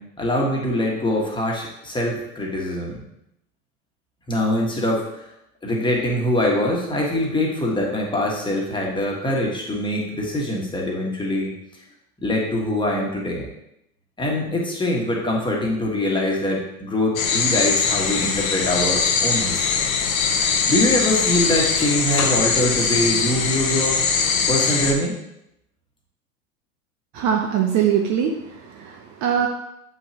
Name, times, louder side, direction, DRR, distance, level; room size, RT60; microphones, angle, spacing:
voice 1, 0.0-3.0 4.3-5.0 5.6-11.5 12.2-13.5 14.2-19.8 20.7-24.0 24.5-25.2, left 1 dB, 10° left, -2 dB, 1.7 m, -23 dB
sound 1, 17.2-24.9, left 5 dB, 65° left, 1.1 m, -21 dB
voice 2, 27.1-29.5, right 8 dB, 40° right, 2 dB, 0.9 m, -22 dB
7.8 x 5.6 x 3.0 m, 0.83 s
hypercardioid pair, 90°, 45 cm